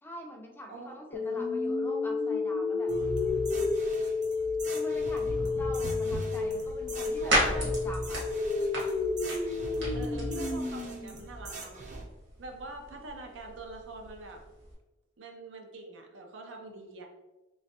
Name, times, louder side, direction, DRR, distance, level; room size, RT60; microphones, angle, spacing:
voice 1, 0.0-2.9 4.7-8.2, equal, 10° left, 0 dB, 0.4 m, -44 dB
voice 2, 0.7-1.5 7.2-7.7 9.9-11.7 12.4-14.4 15.2-17.1, right 2 dB, 90° right, 3 dB, 0.6 m, -44 dB
sound 1, 1.1-11.1, left 3 dB, 70° left, 0.7 m, -31 dB
sound 2, 2.9-12.0, right 1 dB, 40° right, 0.6 m, -40 dB
sound 3, 6.1-14.7, right 1 dB, 65° right, 1.4 m, -36 dB
3.2 x 3.1 x 2.8 m, 1.1 s
head